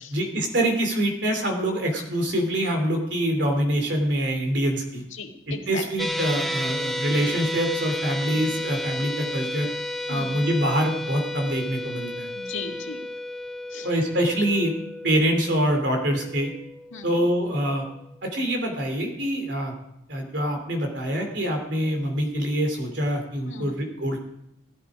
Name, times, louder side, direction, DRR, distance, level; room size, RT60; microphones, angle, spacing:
voice 1, 0.1-5.0 5.5-9.7 10.1-12.3 13.8-14.7 15.0-16.5 17.0-17.9 18.2-19.7 20.1-24.2, right 1 dB, 60° right, 3 dB, 3.3 m, -25 dB
voice 2, 5.1-5.8 7.1-7.3 8.3-8.6 10.1-10.4 12.3-13.0 13.7-13.9 16.9-17.2 23.4-23.7, left 4 dB, 80° left, 3 dB, 1.9 m, -37 dB
sound 1, 6.0-18.3, left 1 dB, ahead, 0.6 m, -32 dB
16.5 x 12.5 x 5.1 m, 0.79 s
head